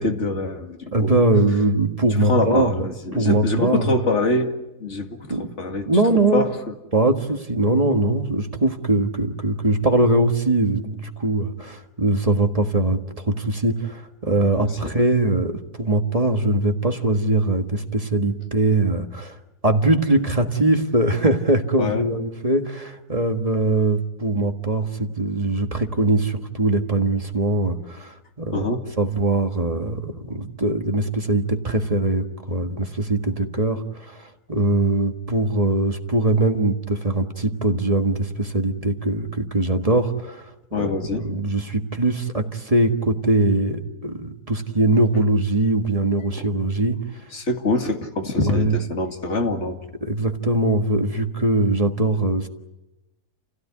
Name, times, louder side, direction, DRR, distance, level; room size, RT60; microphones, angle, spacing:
voice 1, 0.0-1.2 2.3-4.5 4.8-5.3 5.6-5.9 6.3-6.5 14.5-14.9 21.8-22.1 28.5-28.8 40.7-41.2 46.3-46.4 47.3-49.8, left 2 dB, 45° left, 4 dB, 2.5 m, -24 dB
voice 2, 0.9-2.9 3.1-3.9 5.3-5.5 5.8-6.5 6.9-19.4 19.6-28.7 29.0-40.5 40.8-47.0 48.4-48.7 50.0-52.5, right 2 dB, 25° right, 5 dB, 1.6 m, -21 dB
29.0 x 16.5 x 9.8 m, 1.0 s
omnidirectional pair, 1.7 m